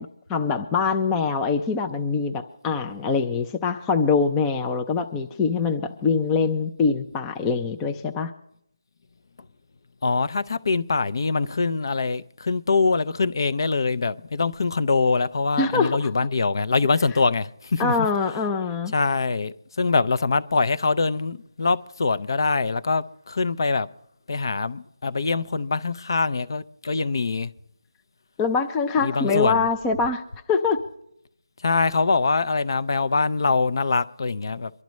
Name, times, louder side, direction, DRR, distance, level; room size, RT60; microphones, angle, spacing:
voice 1, 0.0-8.3 15.6-16.1 17.8-18.9 28.4-30.2 30.5-30.8, left 4 dB, 10° left, 0.4 m, -24 dB
voice 2, 10.0-18.1 18.9-23.9 24.3-27.5 29.0-29.7 31.6-34.7, left 4 dB, 50° left, 0.6 m, -23 dB
24.0 x 12.0 x 3.1 m
figure-of-eight pair, 170°, 3 cm